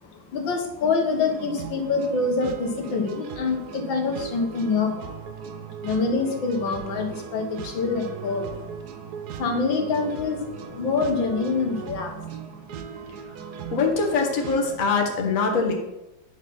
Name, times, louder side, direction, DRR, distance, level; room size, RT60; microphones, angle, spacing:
voice 1, 0.0-5.3 5.8-12.4 12.8-12.9, left 4 dB, 75° left, 4 dB, 1.9 m, -26 dB
sound 1, 1.3-14.8, right 7 dB, 65° right, 1.1 m, -38 dB
voice 2, 13.7-15.7, left 4 dB, 45° left, 2 dB, 1.5 m, -23 dB
9.5 x 4.0 x 6.1 m, 0.92 s
omnidirectional pair, 2.2 m